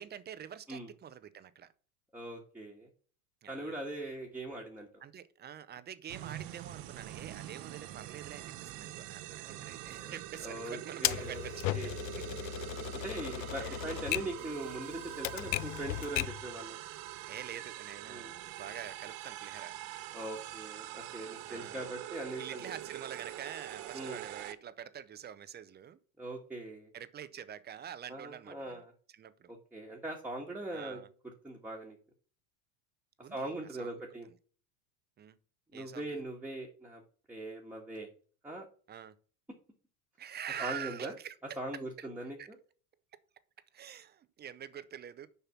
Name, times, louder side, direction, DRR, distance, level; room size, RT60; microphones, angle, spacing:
voice 1, 0.0-1.7 3.4-3.8 5.0-11.9 12.2-13.0 13.6-13.8 17.3-19.7 21.4-21.9 22.4-26.0 26.9-28.8 29.1-29.5 30.7-31.1 33.2-33.5 33.8-33.9 35.2-35.4 35.7-36.2 38.9-39.1 40.2-42.1 42.4-42.5 43.7-45.3, right 9 dB, 25° right, 0.6 m, -46 dB
voice 2, 2.1-2.9 3.5-4.9 9.4-10.1 10.4-11.4 11.7-11.9 13.0-16.8 18.1-18.3 20.1-22.7 23.9-24.2 26.2-26.9 28.1-28.9 29.5-31.0 31.4-32.0 33.3-34.3 35.7-37.0 37.3-38.1 38.4-38.7 40.6-41.1 41.6-42.6, right 1 dB, 5° right, 1.5 m, -41 dB
sound 1, 6.1-24.5, right 14 dB, 50° right, 0.9 m, -44 dB
Typewriter, 11.0-16.5, left 17 dB, 80° left, 0.6 m, -36 dB
7.0 x 5.7 x 5.8 m
supercardioid pair, 115°, 44 cm